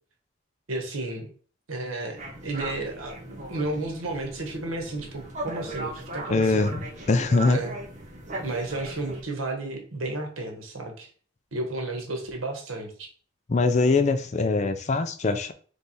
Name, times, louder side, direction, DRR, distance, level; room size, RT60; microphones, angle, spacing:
voice 1, 0.7-1.3 1.7-6.7 7.5-7.8 8.4-11.1 11.5-13.1, right 2 dB, 90° right, 1.2 m, -33 dB
sound 1, 2.1-9.2, right 1 dB, 35° right, 0.9 m, -38 dB
voice 2, 6.3-7.6 13.5-15.5, left 3 dB, 35° left, 0.4 m, -23 dB
3.4 x 3.3 x 4.1 m
head